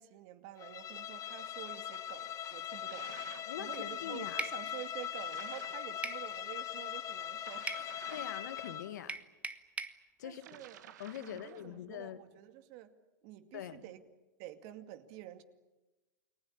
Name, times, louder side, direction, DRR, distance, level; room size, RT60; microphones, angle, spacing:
voice 1, 0.0-7.7 10.2-10.8 11.2-12.9 13.2-14.0 14.4-15.4, right 12 dB, 60° right, 9 dB, 2.3 m, -49 dB
Bowed string instrument, 0.6-9.0, left 10 dB, 35° left, 1.2 m, -41 dB
sound 1, 2.9-3.6 5.2-5.9 7.4-9.1 10.3-11.7, right 10 dB, 80° right, 1.8 m, -54 dB
voice 2, 3.5-4.4 8.1-9.2 10.2-10.6 11.0-12.2 13.5-13.8, left 11 dB, 80° left, 11 dB, 1.7 m, -43 dB
sound 2, 4.4-4.6 6.0-6.3 7.7-7.9 9.1-10.0, right 3 dB, 15° right, 1.3 m, -39 dB
29.5 x 20.5 x 8.6 m, 1.1 s
hypercardioid pair, 110°, 9 cm